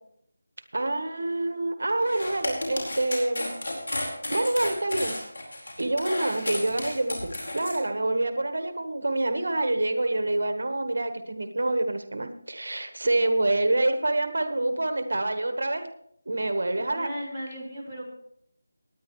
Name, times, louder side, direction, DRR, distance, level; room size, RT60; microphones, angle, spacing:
voice 1, 0.7-3.6 4.3-5.2 5.8-15.9 16.3-17.1, right 2 dB, 70° right, 8 dB, 1.3 m, -27 dB
sound 1, 2.0-7.8, left 1 dB, 70° left, 4.5 m, -33 dB
voice 2, 8.0-8.3 16.8-18.0, equal, 10° left, -9 dB, 2.8 m, -37 dB
18.0 x 10.0 x 3.1 m, 0.70 s
figure-of-eight pair, 175°, 0 cm